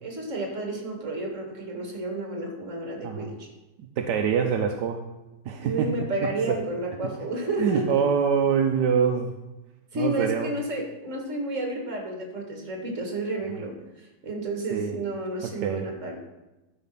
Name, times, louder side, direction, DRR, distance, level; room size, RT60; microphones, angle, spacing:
voice 1, 0.0-3.5 5.6-8.0 9.9-16.2, right 2 dB, 45° right, 1 dB, 2.3 m, -31 dB
voice 2, 4.0-5.0 5.5-5.9 6.2-6.6 7.6-9.3 9.9-10.5 14.7-14.9 15.4-15.9, right 7 dB, 80° right, 4 dB, 1.3 m, -25 dB
12.0 x 5.2 x 5.8 m, 1.0 s
omnidirectional pair, 1.8 m